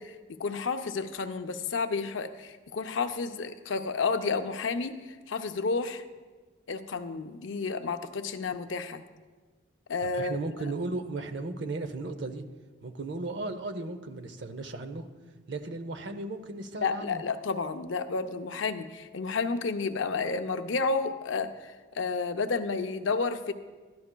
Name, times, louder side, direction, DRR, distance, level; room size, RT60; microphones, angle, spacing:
voice 1, 0.0-6.0 6.7-9.0 9.9-10.4 16.8-23.5, left 4 dB, 75° left, 9 dB, 0.5 m, -31 dB
voice 2, 10.1-12.4 12.8-15.1 15.5-17.2, right 2 dB, 65° right, 9 dB, 0.6 m, -35 dB
12.0 x 11.0 x 2.2 m, 1.3 s
head